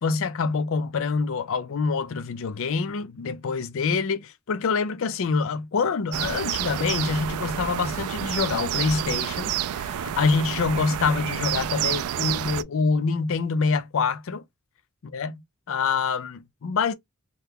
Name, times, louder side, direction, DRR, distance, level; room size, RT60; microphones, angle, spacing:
voice 1, 0.0-14.4 15.0-15.4 15.7-16.9, left 4 dB, 65° left, 0.5 m, -26 dB
sound 1, 6.1-12.6, right 10 dB, 85° right, 0.3 m, -29 dB
2.8 x 2.2 x 3.5 m
head